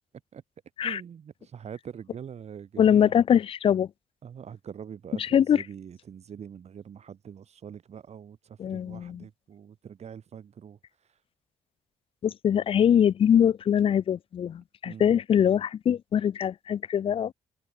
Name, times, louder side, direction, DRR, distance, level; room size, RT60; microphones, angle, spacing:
voice 1, 0.8-3.1 4.2-11.2 14.9-15.2, right 8 dB, 55° right, 5.4 m, -44 dB
voice 2, 2.8-3.9 5.2-5.6 8.6-9.2 12.2-17.3, left 9 dB, 45° left, 0.4 m, -23 dB
open air
supercardioid pair, 65°, 13 cm